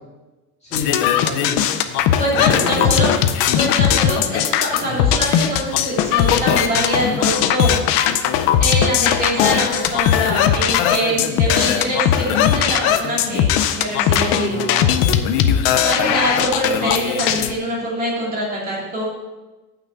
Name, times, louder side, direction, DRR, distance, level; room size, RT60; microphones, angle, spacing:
voice 1, 0.6-1.6 1.8-1.9 2.4-2.9 4.8-5.2 14.5-15.8, left 2 dB, 15° left, -6 dB, 2.0 m, -29 dB
sound 1, 0.7-17.5, left 9 dB, 30° left, 0.4 m, -18 dB
voice 2, 2.2-3.1 3.6-7.8 8.6-14.6 15.8-19.0, right 1 dB, 20° right, -4 dB, 2.5 m, -24 dB
8.9 x 5.9 x 7.8 m, 1.2 s
cardioid pair, 170°, 47 cm